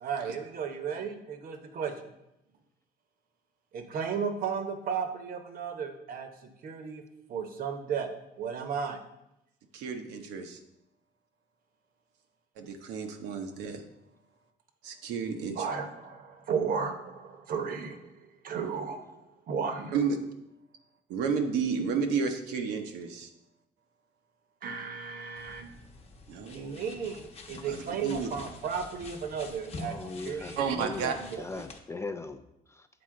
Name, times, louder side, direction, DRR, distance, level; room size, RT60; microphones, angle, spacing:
voice 1, 0.0-1.9 3.7-6.3 6.6-7.0 7.3-8.1 8.4-9.0 15.6-18.0 18.4-19.9 24.6-25.6 26.5-30.0 30.2-31.4, right 6 dB, 60° right, 6 dB, 0.9 m, -34 dB
voice 2, 9.7-10.6 12.6-13.8 14.8-15.7 19.9-20.2 21.1-23.3 26.3-26.8 27.6-28.3 30.6-31.1, right 6 dB, 90° right, 4 dB, 0.8 m, -32 dB
sound 1, 25.4-31.8, left 3 dB, 35° left, 0.9 m, -47 dB
voice 3, 29.8-32.9, left 3 dB, 15° left, 8 dB, 0.3 m, -40 dB
7.9 x 4.1 x 3.7 m, 0.87 s
cardioid pair, 110°, 17 cm